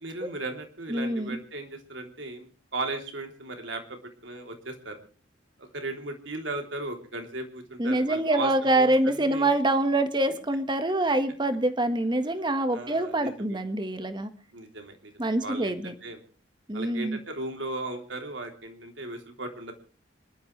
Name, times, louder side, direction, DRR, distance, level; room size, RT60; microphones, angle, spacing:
voice 1, 0.0-5.0 5.6-9.5 12.7-13.6 14.5-16.2 16.7-19.7, right 2 dB, 70° right, 4 dB, 3.4 m, -37 dB
voice 2, 0.9-1.4 7.8-14.3 15.2-15.9 16.7-17.2, right 1 dB, 25° right, 9 dB, 1.6 m, -25 dB
27.0 x 12.5 x 3.3 m, 0.38 s
head